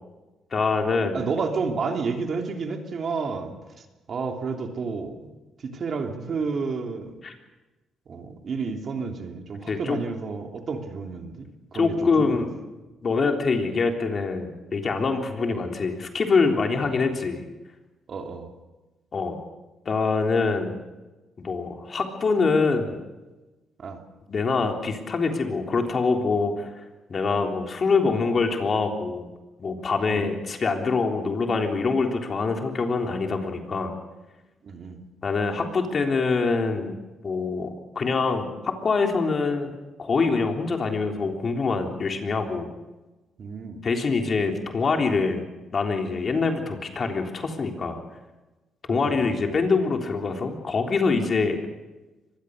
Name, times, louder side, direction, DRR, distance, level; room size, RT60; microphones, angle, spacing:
voice 1, 0.5-1.2 7.2-7.3 9.7-10.0 11.7-12.5 13.0-17.4 19.1-19.4 19.9-20.8 21.4-23.0 24.3-26.7 27.1-29.3 29.6-33.9 35.2-36.9 37.2-39.7 40.0-42.7 43.8-45.4 45.7-48.0 48.9-51.6, left 4 dB, 45° left, 3 dB, 3.6 m, -24 dB
voice 2, 1.1-5.3 5.6-7.1 8.1-12.5 15.5-15.7 16.8-17.0 18.1-18.5 23.8-24.0 30.1-30.3 34.6-35.0 43.4-43.8 48.9-49.6, right 4 dB, 50° right, 3 dB, 3.2 m, -31 dB
24.0 x 20.0 x 6.6 m, 1.1 s
cardioid pair, 90°, 0 cm